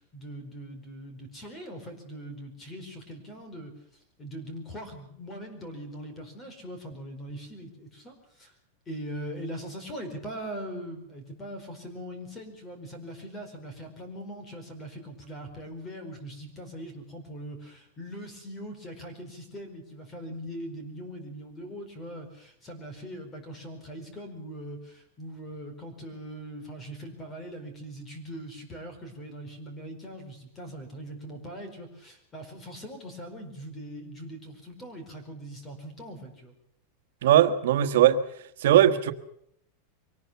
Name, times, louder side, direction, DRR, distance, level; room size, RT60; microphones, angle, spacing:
voice 1, 0.0-3.7 4.2-8.5 8.9-36.5, equal, 15° left, 4.7 m, -41 dB
voice 2, 37.2-38.2 38.6-39.1, right 11 dB, 75° right, 1.4 m, -19 dB
24.0 x 18.5 x 6.9 m
supercardioid pair, 160°, 0 cm